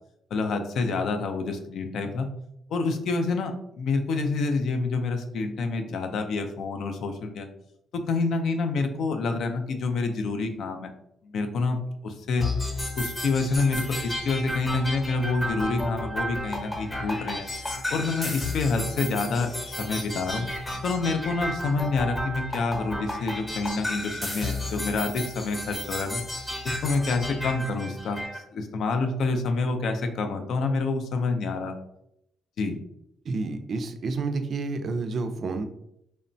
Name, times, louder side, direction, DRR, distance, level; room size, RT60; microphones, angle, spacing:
voice 1, 0.3-2.3 2.7-7.5 7.9-10.9 11.2-12.5 13.0-17.5 17.9-20.5 20.8-26.2 26.6-31.7 32.6-32.8, left 3 dB, 70° left, 6 dB, 0.4 m, -27 dB
sound 1, 12.4-28.4, left 1 dB, 20° left, 0.8 m, -33 dB
voice 2, 33.3-35.7, right 3 dB, 55° right, 8 dB, 0.3 m, -29 dB
2.9 x 2.1 x 2.6 m, 0.77 s
cardioid pair, 90°, 0 cm